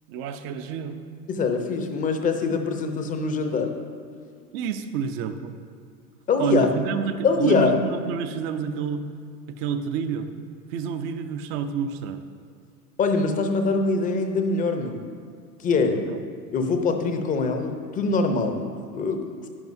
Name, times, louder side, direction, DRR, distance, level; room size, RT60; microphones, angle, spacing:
voice 1, 0.1-1.0 4.5-5.5 6.4-9.0 9.5-10.3 10.7-12.2 15.9-16.2, right 6 dB, 30° right, 9 dB, 0.5 m, -29 dB
voice 2, 1.3-3.7 6.3-6.7 7.2-7.8 13.0-15.0 15.6-16.0 16.5-19.5, left 4 dB, 15° left, 6 dB, 0.6 m, -23 dB
11.0 x 10.5 x 2.6 m, 2.1 s
figure-of-eight pair, 100°, 49 cm